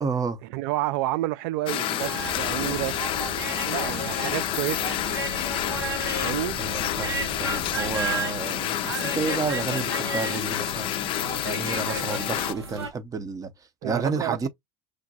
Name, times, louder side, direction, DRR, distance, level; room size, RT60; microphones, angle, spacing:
voice 1, 0.0-0.4 6.6-10.9 11.4-13.5 13.8-14.5, right 5 dB, 25° right, 0.7 m, -30 dB
voice 2, 0.5-3.0 3.6-5.4 6.2-6.6 13.8-14.5, right 17 dB, 60° right, 0.4 m, -30 dB
sound 1, 1.7-12.5, left 12 dB, 40° left, 0.4 m, -29 dB
sound 2, 2.0-12.9, right 3 dB, 90° right, 0.9 m, -34 dB
sound 3, 2.2-8.1, right 5 dB, 40° right, 1.2 m, -42 dB
6.3 x 2.2 x 2.7 m
hypercardioid pair, 75°, 13 cm